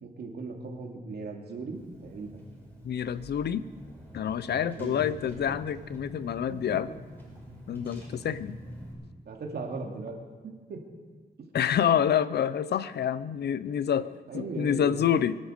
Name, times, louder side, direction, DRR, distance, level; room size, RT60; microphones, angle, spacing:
voice 1, 0.0-2.4 4.7-5.6 6.5-6.6 6.9-7.0 9.2-10.2 10.4-10.8 14.3-15.0, right 3 dB, 75° right, 1 dB, 2.7 m, -38 dB
Car / Engine, 1.7-8.9, equal, 10° left, 5.7 m, -46 dB
voice 2, 2.8-3.6 4.1-6.9 7.7-8.6 11.5-14.1 14.3-15.4, left 9 dB, 80° left, 15 dB, 0.7 m, -27 dB
24.0 x 11.5 x 5.2 m, 1.4 s
wide cardioid pair, 130°, 17 cm